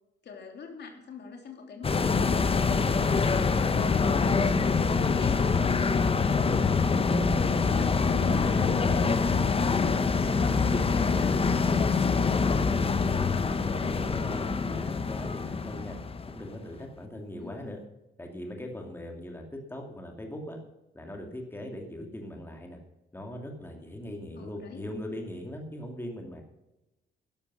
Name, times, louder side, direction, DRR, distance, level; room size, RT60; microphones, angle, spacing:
voice 1, 0.2-3.9 4.2-11.3 17.4-17.7 24.4-24.9, left 5 dB, 60° left, 3 dB, 3.1 m, -43 dB
sound 1, 1.8-16.5 16.8-16.9, left 4 dB, 30° left, 1.1 m, -25 dB
voice 2, 10.5-10.9 11.1-11.8 12.4-12.8 13.4-16.0 16.3-17.8 18.2-20.6 20.9-22.8 23.1-26.4, left 1 dB, 10° left, 2 dB, 2.6 m, -40 dB
11.5 x 11.5 x 6.3 m, 0.97 s
cardioid pair, 90°, 20 cm